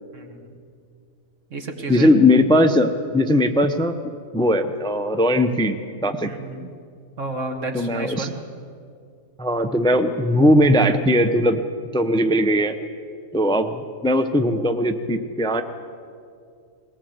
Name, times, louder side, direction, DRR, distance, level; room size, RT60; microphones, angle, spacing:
voice 1, 0.1-0.5 1.5-2.1 6.2-6.7 7.2-8.3, right 2 dB, 70° right, 4 dB, 2.2 m, -31 dB
voice 2, 1.9-3.9 4.3-5.8 6.0-6.3 7.7-8.3 9.4-11.6 11.9-12.7 13.3-15.6, left 1 dB, 5° left, 8 dB, 0.6 m, -19 dB
21.0 x 18.0 x 7.9 m, 2.3 s
omnidirectional pair, 1.3 m